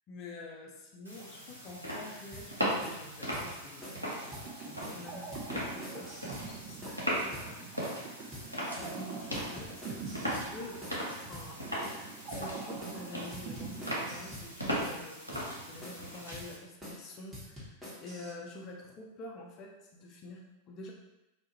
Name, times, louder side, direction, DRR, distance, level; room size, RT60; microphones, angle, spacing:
voice 1, 0.1-5.2 5.5-7.7 8.8-10.8 11.2-11.9 12.3-20.9, left 2 dB, 35° left, -1 dB, 0.5 m, -48 dB
sound 1, 1.0-16.6, equal, 90° left, 0.6 m, -38 dB
sound 2, 2.3-2.5 2.8-3.0 3.3-3.5 3.8-4.0 4.3-4.5 4.8-5.0 5.3-6.5 6.8-7.0 7.3-7.5 7.8-8.1 8.3-8.5 8.8-9.0 9.3-10.5 10.8-11.0 11.3-11.5 11.8-12.1 12.3-12.5 12.8-13.0 13.3-14.5 14.8-15.0 15.3-15.5 15.8-16.1 16.3-16.5 16.8-17.0 17.3-18.3, equal, 10° right, 0.9 m, -46 dB
sound 3, 4.2-14.8, right 4 dB, 40° right, 0.5 m, -45 dB
2.2 x 2.1 x 2.9 m, 0.95 s
figure-of-eight pair, 90°, 0 cm